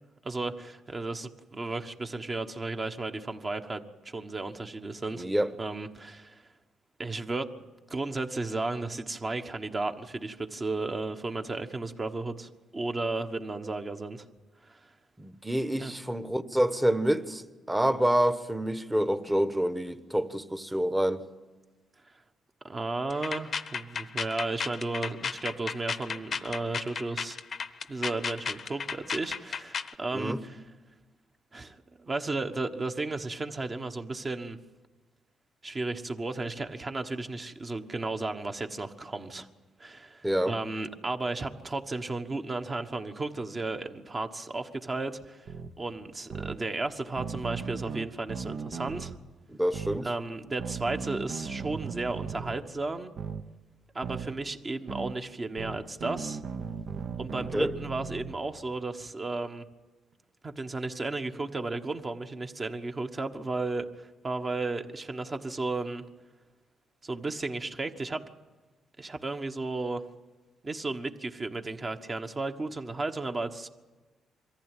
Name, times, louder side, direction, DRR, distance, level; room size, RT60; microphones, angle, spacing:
voice 1, 0.2-5.3 5.6-6.4 7.0-7.5 7.9-14.3 14.6-14.9 15.8-15.9 22.6-27.4 27.9-30.6 31.5-34.6 35.6-39.5 39.8-45.5 45.8-49.2 50.0-53.1 53.9-56.4 57.2-59.6 60.4-66.0 67.0-68.2 69.0-70.1 70.6-73.7, right 3 dB, 30° right, 6 dB, 1.3 m, -34 dB
voice 2, 5.1-5.5 15.2-21.2 30.1-30.4 40.2-40.5 49.5-50.1 57.5-57.7, right 1 dB, 10° right, 11 dB, 1.1 m, -27 dB
sound 1, 23.1-29.9, left 6 dB, 45° left, 0.8 m, -34 dB
sound 2, 45.5-45.7 46.3-46.6 47.2-49.1 49.7-50.0 50.6-52.6 53.2-53.4 54.0-54.3 54.9-55.1 55.6-58.4, right 6 dB, 65° right, 1.1 m, -37 dB
22.5 x 15.0 x 9.1 m, 1.2 s
cardioid pair, 90°, 0 cm